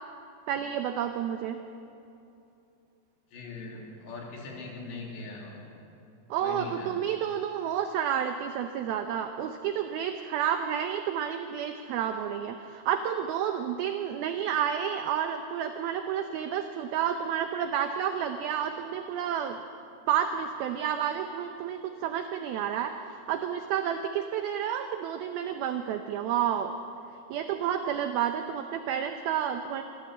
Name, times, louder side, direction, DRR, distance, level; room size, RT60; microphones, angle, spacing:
voice 1, 0.5-1.6 6.3-19.6 20.1-26.7 27.3-29.8, right 9 dB, 90° right, 7 dB, 2.1 m, -30 dB
voice 2, 3.3-5.7 6.4-7.0, left 3 dB, 70° left, -1 dB, 5.1 m, -41 dB
25.5 x 14.0 x 7.7 m, 2.7 s
omnidirectional pair, 5.4 m